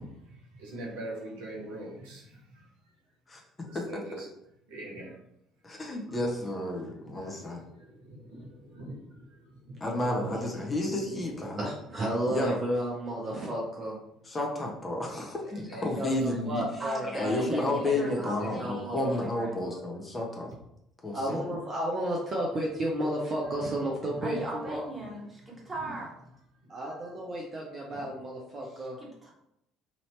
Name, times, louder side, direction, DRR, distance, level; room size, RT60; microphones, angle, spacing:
voice 1, 0.0-2.7 3.6-4.3 4.7-5.2 7.0-10.4 10.7-11.6 15.4-16.1 16.6-16.7 23.7-23.8 24.1-24.4 25.0-25.7 26.5-26.7 27.0-27.1 27.9-28.1, right 1 dB, 70° right, -3 dB, 1.0 m, -44 dB
voice 2, 5.6-7.6 9.8-11.6 12.3-12.6 14.2-16.7 17.1-20.5 21.0-21.6, left 1 dB, 25° left, 0 dB, 0.8 m, -31 dB
voice 3, 11.6-14.0 16.0-19.0 19.3-19.8 21.1-24.8 26.7-29.0, right 1 dB, 40° right, -2 dB, 0.6 m, -33 dB
voice 4, 16.8-19.6 24.2-26.1 28.6-29.3, right 2 dB, 10° right, -4 dB, 1.5 m, -39 dB
2.9 x 2.7 x 3.1 m, 0.79 s
figure-of-eight pair, 55°, 0 cm